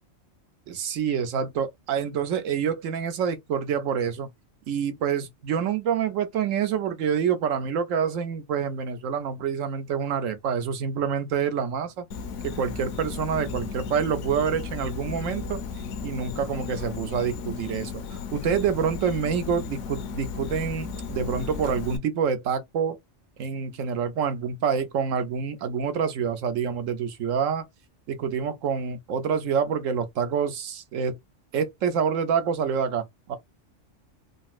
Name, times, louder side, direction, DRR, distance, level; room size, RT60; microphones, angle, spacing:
voice 1, 0.7-4.3 4.7-12.1 12.4-15.6 16.0-23.0 23.4-27.6 28.1-31.2 31.5-33.4, right 7 dB, 80° right, 1.1 m, -27 dB
Insect, 12.1-22.0, left 5 dB, 75° left, 1.0 m, -35 dB
3.9 x 2.0 x 2.4 m
omnidirectional pair, 1.3 m